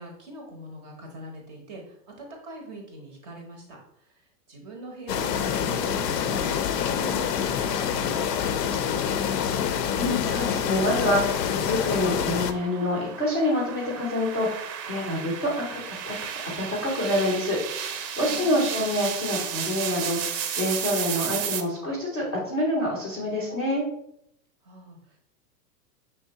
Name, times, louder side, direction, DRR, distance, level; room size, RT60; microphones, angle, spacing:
voice 1, 0.0-4.1 4.5-9.0 18.3-18.9 24.6-25.2, right 2 dB, 25° right, 1 dB, 0.6 m, -42 dB
sound 1, 5.1-12.5, left 8 dB, 80° left, 0.7 m, -26 dB
sound 2, 9.5-21.6, right 8 dB, 90° right, 0.8 m, -34 dB
voice 2, 9.7-16.1 16.6-23.8, left 1 dB, 15° left, -6 dB, 0.5 m, -27 dB
5.9 x 3.3 x 2.7 m, 0.75 s
supercardioid pair, 165°, 49 cm